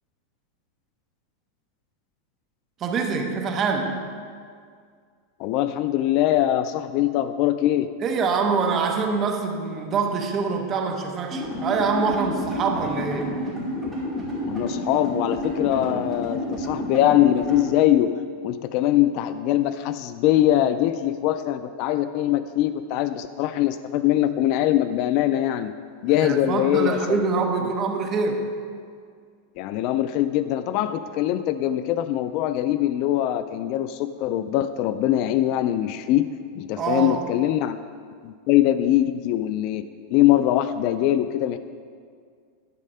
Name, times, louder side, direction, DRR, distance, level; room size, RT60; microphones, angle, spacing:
voice 1, 2.8-4.1 8.0-13.4 26.2-28.5 36.8-37.3, right 5 dB, 25° right, 3 dB, 1.0 m, -25 dB
voice 2, 5.4-7.9 14.5-18.1 18.4-25.7 26.0-27.0 29.6-37.8 38.2-39.8 40.1-41.6, left 13 dB, 40° left, 12 dB, 0.3 m, -22 dB
sound 1, 11.3-17.6, left 1 dB, 5° right, 2.3 m, -30 dB
10.5 x 7.3 x 5.5 m, 2.1 s
supercardioid pair, 165°, 0 cm